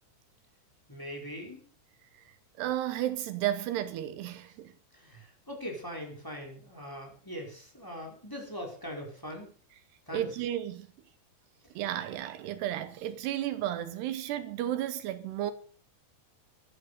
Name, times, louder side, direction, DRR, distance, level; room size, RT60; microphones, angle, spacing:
voice 1, 0.9-1.6 4.9-9.5 10.1-10.3, equal, 5° left, 4.0 m, -41 dB
voice 2, 2.6-4.7 10.1-10.9 11.8-15.5, right 12 dB, 75° right, 2.7 m, -33 dB
14.5 x 11.0 x 6.7 m
omnidirectional pair, 5.5 m